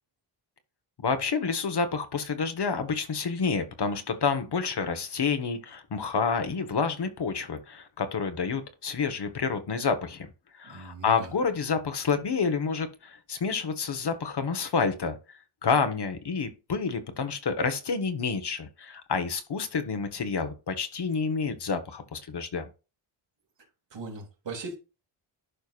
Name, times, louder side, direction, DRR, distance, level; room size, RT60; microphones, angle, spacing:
voice 1, 1.0-10.3 10.6-22.7, left 5 dB, 50° left, 1.5 m, -29 dB
voice 2, 10.6-11.3 23.9-24.8, right 3 dB, 60° right, 2.9 m, -39 dB
11.5 x 4.6 x 2.5 m
cardioid pair, 65°, 50 cm